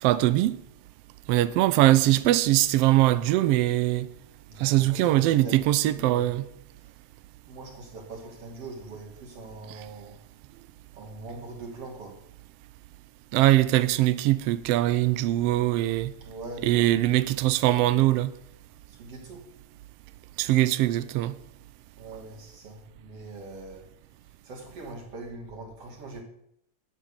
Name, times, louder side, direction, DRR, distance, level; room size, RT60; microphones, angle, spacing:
voice 1, 0.0-0.6 1.3-4.1 4.6-6.5 13.3-16.1 16.6-18.3 20.4-21.3, right 15 dB, 85° right, 1.4 m, -22 dB
voice 2, 4.5-6.3 6.8-7.0 7.5-10.2 10.9-12.2 16.2-16.9 18.9-19.5 21.9-26.2, right 2 dB, 55° right, 3.8 m, -42 dB
12.0 x 8.3 x 6.8 m
omnidirectional pair, 3.4 m